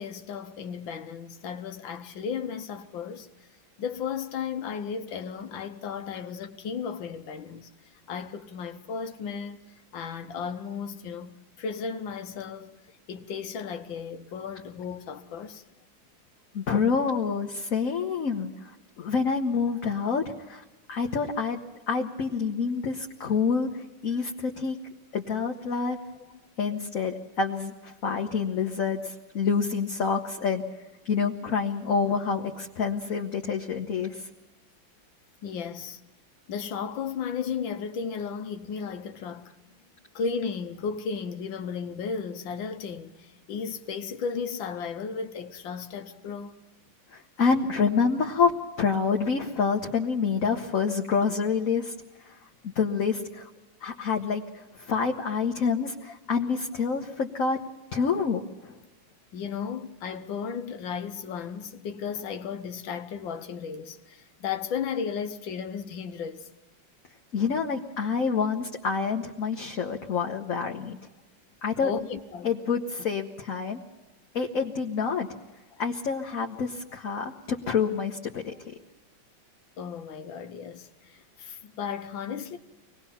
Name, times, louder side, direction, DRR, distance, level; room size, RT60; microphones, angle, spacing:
voice 1, 0.0-3.5 3.8-7.7 8.1-9.6 9.9-12.8 13.1-15.6 25.8-25.9 26.3-26.4 29.4-29.5 35.4-36.0 36.5-39.5 40.2-46.6 59.3-66.5 71.8-72.5 79.8-82.6, left 6 dB, 75° left, 1.7 m, -34 dB
voice 2, 16.5-18.7 19.0-20.6 20.9-21.6 21.9-24.8 25.1-26.0 26.6-30.6 31.0-34.3 47.1-48.5 48.8-51.9 52.2-52.3 52.6-53.5 53.8-57.6 57.9-58.7 67.3-71.0 71.6-71.9 72.4-73.8 74.3-75.3 75.8-78.7, left 5 dB, 50° left, 1.4 m, -27 dB
24.5 x 19.5 x 5.7 m
omnidirectional pair, 2.2 m